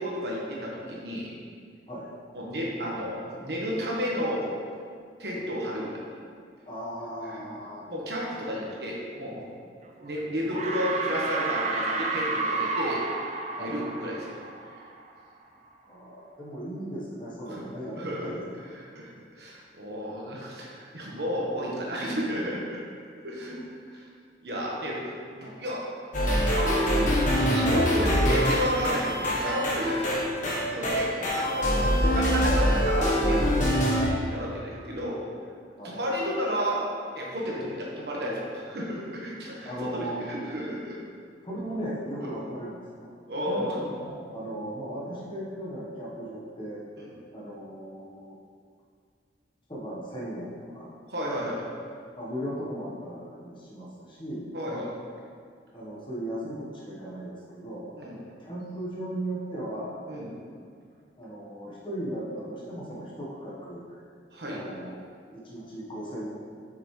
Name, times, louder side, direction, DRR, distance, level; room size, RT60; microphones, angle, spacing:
voice 1, 0.0-1.4 2.3-4.5 5.2-6.0 7.3-7.4 7.9-9.4 10.0-13.0 13.6-14.4 17.4-17.6 18.0-18.3 18.7-22.8 23.2-23.6 23.8-24.1 24.4-25.8 26.5-30.2 30.5-31.8 32.0-33.7 34.0-35.3 35.8-36.8 37.1-41.0 42.2-42.3 43.3-43.8 47.0-47.1 51.1-51.7 54.5-54.9 58.0-58.2 60.1-60.4 64.3-64.6, equal, 65° right, -4 dB, 1.4 m, -32 dB
voice 2, 6.6-7.9 13.5-14.0 15.8-18.4 23.2-23.7 35.8-36.0 39.6-40.2 41.4-43.1 43.4-43.7 44.0-46.8 47.3-48.4 49.7-50.9 52.2-54.5 55.7-57.9 58.4-60.0 61.2-64.0 64.5-64.9 65.3-66.3, right 1 dB, 30° left, -5 dB, 1.3 m, -37 dB
sound 1, 9.8-10.2 10.5-15.1, right 3 dB, 40° right, 0.6 m, -31 dB
sound 2, 26.1-34.1, equal, 45° left, 1.3 m, -24 dB
7.8 x 6.0 x 3.3 m, 2.2 s
head